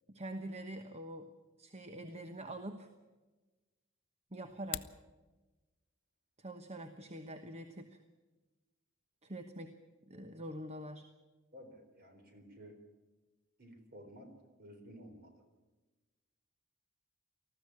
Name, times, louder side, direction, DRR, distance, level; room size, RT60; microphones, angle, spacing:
voice 1, 0.1-1.3 1.6-2.9 4.3-4.9 6.4-8.0 9.2-9.7 10.1-11.1, right 1 dB, 30° right, 7 dB, 1.1 m, -45 dB
sound 1, 4.5-5.0, left 12 dB, 80° left, 0.8 m, -42 dB
voice 2, 11.5-12.8 13.6-14.3 14.6-15.3, equal, 50° right, 5 dB, 4.0 m, -53 dB
19.5 x 14.5 x 9.8 m, 1.2 s
head